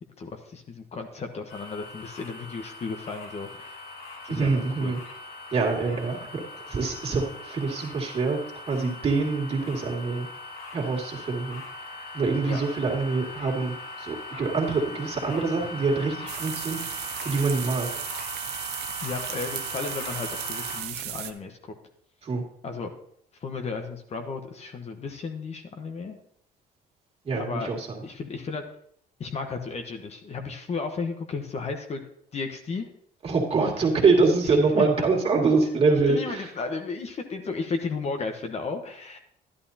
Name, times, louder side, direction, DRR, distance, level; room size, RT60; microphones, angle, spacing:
voice 1, 0.2-3.8 4.2-4.5 4.8-4.9 12.4-12.6 19.0-21.7 22.6-22.9 23.4-26.2 27.4-27.7 28.0-28.6 29.2-32.0 32.3-32.9 34.4-34.9 36.1-39.2, left 4 dB, 40° left, 5 dB, 1.2 m, -34 dB
sound 1, 1.5-20.8, left 3 dB, 80° left, 2.8 m, -40 dB
voice 2, 4.3-5.0 5.5-8.4 8.7-10.3 10.7-11.6 12.1-16.9 17.2-17.9 22.2-22.4 27.2-28.0 33.2-36.5, right 4 dB, 35° right, -1 dB, 2.4 m, -25 dB
sound 2, 16.3-21.3, right 13 dB, 80° right, 0.7 m, -35 dB
11.5 x 11.0 x 2.9 m, 0.68 s
cardioid pair, 110°, 17 cm